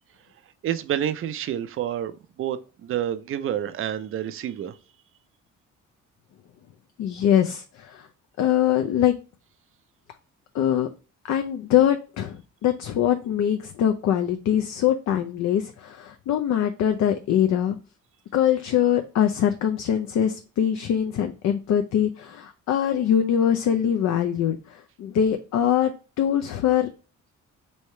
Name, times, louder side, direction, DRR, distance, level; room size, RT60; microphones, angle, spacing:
voice 1, 0.6-4.8, right 10 dB, 45° right, 0.5 m, -29 dB
voice 2, 7.0-8.1 8.4-9.1 10.5-10.9 11.3-17.8 18.3-25.9 26.2-26.9, left 10 dB, 65° left, 0.5 m, -23 dB
3.2 x 2.8 x 4.3 m
cardioid pair, 90°, 30 cm